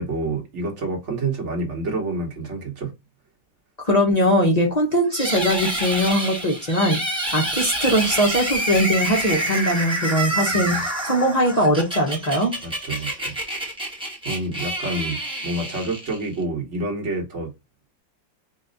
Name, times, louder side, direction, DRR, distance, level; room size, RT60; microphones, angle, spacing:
voice 1, 0.0-3.0 10.5-10.8 12.6-13.4 14.2-17.5, right 2 dB, 40° right, 1.4 m, -28 dB
voice 2, 3.8-7.0 7.3-12.5, equal, 35° left, 0.6 m, -21 dB
sound 1, 5.1-16.4, right 1 dB, 5° right, 1.0 m, -27 dB
4.1 x 2.4 x 3.9 m
omnidirectional pair, 2.0 m